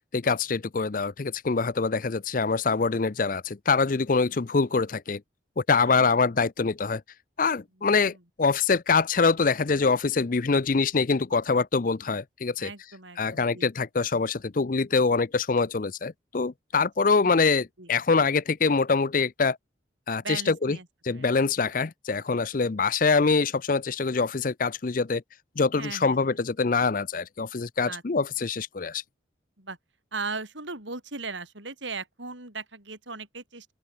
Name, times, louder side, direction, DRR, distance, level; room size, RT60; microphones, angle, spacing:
voice 1, 0.1-5.2 5.6-7.0 7.4-12.7 13.2-19.6 20.1-20.8 21.0-25.2 25.6-29.0, left 4 dB, 45° left, 0.5 m, -24 dB
voice 2, 5.8-6.2 7.8-8.2 12.6-13.7 16.7-16.9 17.2-17.5 17.8-17.9 20.2-21.3 25.8-26.4 27.8-28.0 29.6-29.8 30.1-33.7, right 4 dB, 75° right, 6.3 m, -38 dB
open air
head